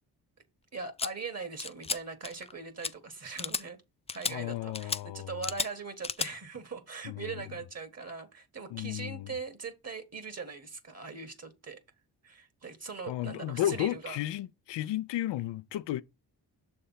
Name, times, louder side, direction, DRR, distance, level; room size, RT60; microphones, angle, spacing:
voice 1, 0.7-3.8 4.1-11.8 12.2-14.2, right 4 dB, 35° right, 1.5 m, -41 dB
sound 1, 1.0-1.1 1.6-2.5 2.8-2.9 3.4-3.6 4.1-4.3 4.7-5.0 5.4-5.7 6.0-6.3, left 4 dB, 15° left, 0.3 m, -33 dB
voice 2, 4.3-5.3 7.0-7.3 8.7-9.3 13.1-16.0, left 13 dB, 85° left, 0.6 m, -33 dB
6.6 x 3.5 x 5.5 m
cardioid pair, 65°, 42 cm